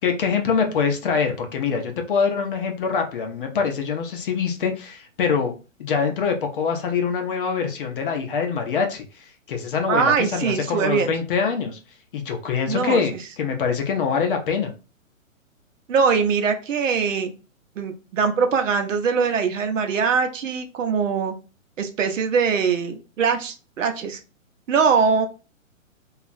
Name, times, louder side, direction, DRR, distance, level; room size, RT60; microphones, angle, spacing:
voice 1, 0.0-5.5 5.8-11.8 12.1-14.7, left 6 dB, 40° left, 4 dB, 0.6 m, -24 dB
voice 2, 9.9-11.1 12.7-13.0 15.9-17.3 17.8-21.3 21.8-24.2 24.7-25.3, right 5 dB, 65° right, 6 dB, 0.7 m, -22 dB
2.9 x 2.3 x 2.5 m, 0.33 s
hypercardioid pair, 140°, 41 cm